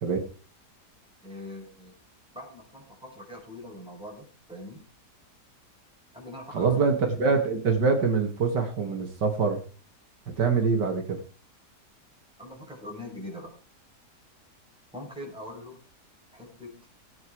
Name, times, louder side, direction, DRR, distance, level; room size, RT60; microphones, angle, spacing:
voice 1, 1.2-1.9 2.3-4.8 6.1-7.3 10.5-10.6 12.4-13.6 14.9-15.8 16.3-16.9, left 1 dB, 5° right, -1 dB, 5.7 m, -42 dB
voice 2, 6.5-9.6 10.3-11.2, right 5 dB, 80° right, 4 dB, 2.6 m, -24 dB
16.5 x 8.4 x 4.7 m, 0.39 s
omnidirectional pair, 1.8 m